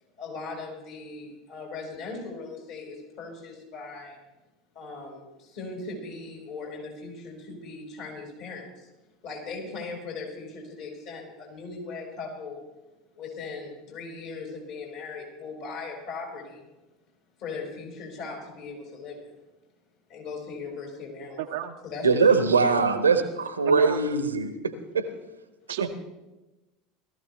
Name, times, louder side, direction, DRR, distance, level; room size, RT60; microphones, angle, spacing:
voice 1, 0.2-4.2 4.8-8.9 9.2-12.6 13.2-16.7 17.4-19.3 20.1-22.8, left 4 dB, 55° left, -1 dB, 5.1 m, -39 dB
voice 2, 21.4-21.7 23.7-24.0 25.7-25.9, right 12 dB, 60° right, 3 dB, 0.6 m, -31 dB
voice 3, 22.0-25.1, right 4 dB, 80° right, 10 dB, 1.0 m, -22 dB
18.0 x 14.0 x 3.4 m, 1.0 s
figure-of-eight pair, 75°, 0 cm